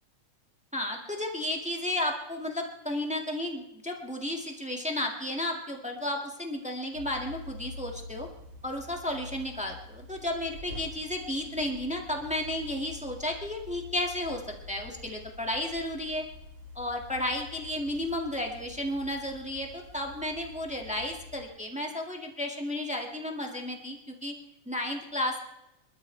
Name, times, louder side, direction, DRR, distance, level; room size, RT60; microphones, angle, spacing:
voice 1, 0.7-8.3 8.6-14.4 14.7-16.3 16.7-24.4 24.6-25.4, left 1 dB, 5° right, 1 dB, 1.0 m, -33 dB
sound 1, 6.9-21.4, left 2 dB, 55° right, 3.5 m, -46 dB
26.0 x 13.0 x 3.3 m, 0.85 s
omnidirectional pair, 3.3 m